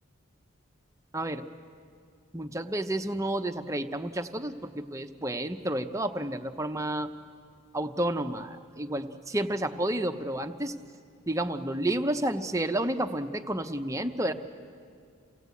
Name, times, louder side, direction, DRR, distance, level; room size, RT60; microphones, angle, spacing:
voice 1, 1.1-1.5 2.3-7.1 7.7-10.7 11.3-14.3, right 1 dB, 15° right, 7 dB, 0.8 m, -30 dB
28.5 x 17.5 x 8.3 m, 2.2 s
head